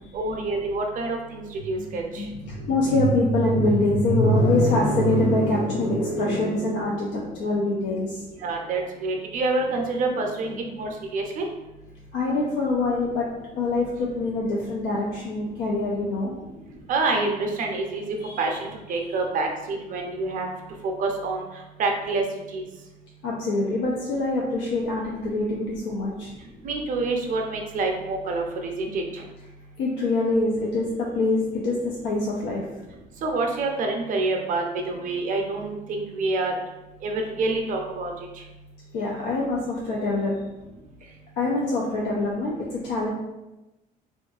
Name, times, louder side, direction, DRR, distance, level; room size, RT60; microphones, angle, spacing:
voice 1, 0.1-2.2 8.4-11.5 16.9-18.0 18.4-20.5 20.8-21.4 21.8-22.2 22.5-22.6 26.6-29.2 33.2-36.5 37.0-38.1, right 3 dB, 50° right, 2 dB, 0.5 m, -27 dB
voice 2, 1.8-8.5 10.5-10.6 12.1-13.3 13.6-16.3 18.2-18.6 19.0-19.1 23.2-26.3 29.8-32.7 38.9-40.3 41.4-43.1, left 2 dB, 85° left, -3 dB, 0.5 m, -24 dB
2.6 x 2.4 x 2.3 m, 1.0 s
cardioid pair, 110°, 17 cm